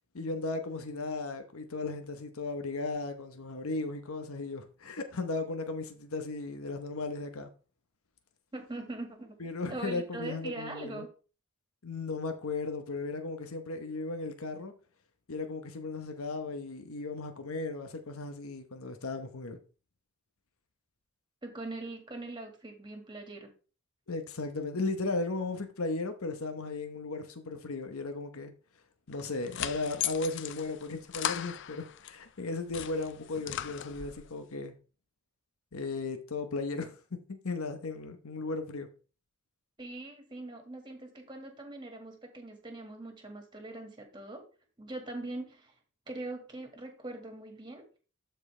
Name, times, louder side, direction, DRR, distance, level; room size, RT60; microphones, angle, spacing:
voice 1, 0.1-7.5 9.4-11.0 11.8-14.7 15.3-19.6 24.1-28.5 29.1-34.8 35.7-37.0 37.4-38.9, left 3 dB, 75° left, 1.0 m, -36 dB
voice 2, 8.5-9.3 9.7-11.1 21.4-23.5 39.8-44.4 44.8-45.7 46.1-47.9, right 2 dB, 20° right, 1.8 m, -42 dB
sound 1, 29.1-32.2 32.5-34.3, left 11 dB, 55° left, 0.4 m, -37 dB
12.5 x 4.5 x 3.3 m
head